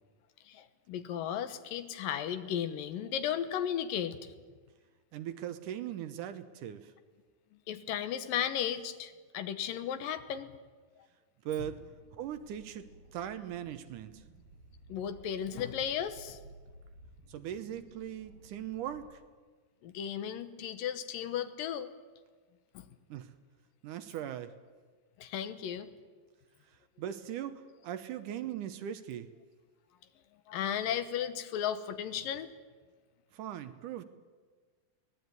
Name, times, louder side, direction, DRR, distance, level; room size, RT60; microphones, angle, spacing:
voice 1, 0.4-4.3 7.7-10.5 14.9-16.4 19.8-21.9 22.7-22.9 25.2-25.9 30.5-32.5, left 9 dB, 75° left, 11 dB, 2.8 m, -35 dB
voice 2, 5.1-6.9 11.5-11.8 12.1-14.2 17.3-19.2 23.1-23.3 23.8-24.5 27.0-29.3 33.3-34.0, right 10 dB, 75° right, 11 dB, 2.3 m, -39 dB
sound 1, 11.5-19.1, right 2 dB, 90° right, 4.8 m, -56 dB
23.0 x 18.0 x 9.6 m, 1.5 s
omnidirectional pair, 4.1 m